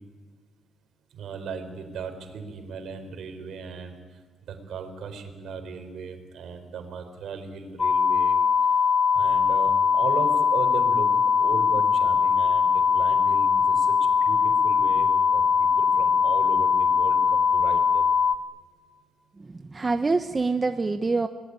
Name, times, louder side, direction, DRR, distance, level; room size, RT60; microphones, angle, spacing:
voice 1, 1.1-8.4 8.7-8.8 9.1-18.1, right 5 dB, 70° right, 7 dB, 4.5 m, -37 dB
sound 1, 7.8-18.4, left 6 dB, 35° left, 1.4 m, -21 dB
voice 2, 19.4-21.3, right 3 dB, 25° right, 8 dB, 1.0 m, -26 dB
25.5 x 20.0 x 9.8 m, 1.5 s
cardioid pair, 90°, 0 cm